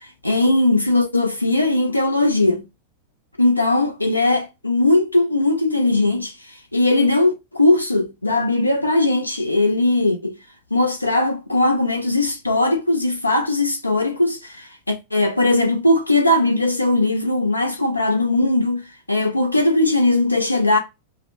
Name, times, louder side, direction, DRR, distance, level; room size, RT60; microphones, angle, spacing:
voice 1, 0.2-2.6 3.4-10.3 10.7-20.8, left 2 dB, 85° left, 0.5 m, -19 dB
2.8 x 2.0 x 2.5 m
figure-of-eight pair, 90°, 0 cm